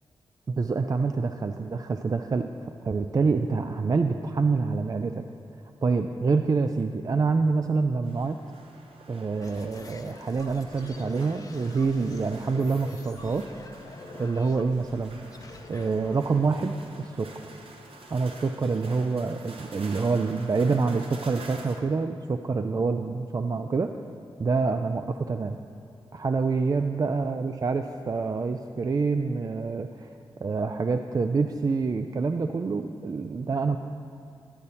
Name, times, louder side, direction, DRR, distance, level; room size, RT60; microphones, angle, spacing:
voice 1, 0.5-5.3 5.8-8.4 9.1-13.5 14.1-15.2 15.7-17.3 18.1-23.9 24.4-25.6 26.1-30.1 30.4-33.8, right 4 dB, 40° right, 7 dB, 0.4 m, -26 dB
sound 1, 8.0-21.8, right 2 dB, 70° right, 1.0 m, -48 dB
sound 2, 9.4-17.6, left 3 dB, 35° left, 0.6 m, -47 dB
10.5 x 8.4 x 4.1 m, 2.5 s
cardioid pair, 65°, 10 cm